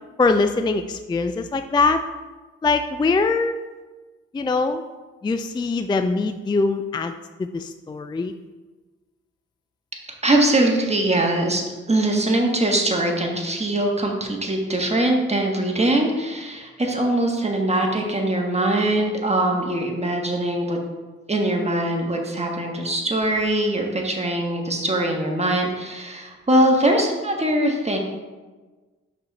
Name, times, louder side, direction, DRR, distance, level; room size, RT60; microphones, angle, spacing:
voice 1, 0.2-2.0 2.6-3.6 4.3-4.8 5.2-8.3, left 3 dB, 15° left, 8 dB, 0.3 m, -22 dB
voice 2, 10.2-20.8 21.3-28.0, right 1 dB, 20° right, 1 dB, 1.5 m, -22 dB
5.3 x 4.3 x 5.3 m, 1.3 s
supercardioid pair, 45°, 30 cm